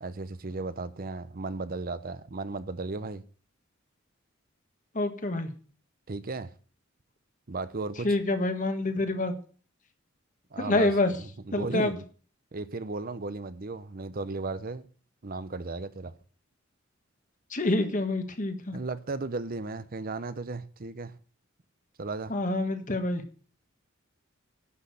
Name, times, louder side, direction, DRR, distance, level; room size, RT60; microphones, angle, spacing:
voice 1, 0.0-3.2 6.1-6.5 7.5-8.1 10.5-10.9 11.5-12.0 12.5-14.9 15.2-16.1 18.7-21.1 22.0-22.3, right 3 dB, 45° right, 0.7 m, -35 dB
voice 2, 4.9-5.5 8.0-9.3 10.6-11.1 11.5-12.0 17.5-18.8 22.3-23.2, left 2 dB, 40° left, 1.5 m, -27 dB
11.0 x 6.3 x 7.8 m
head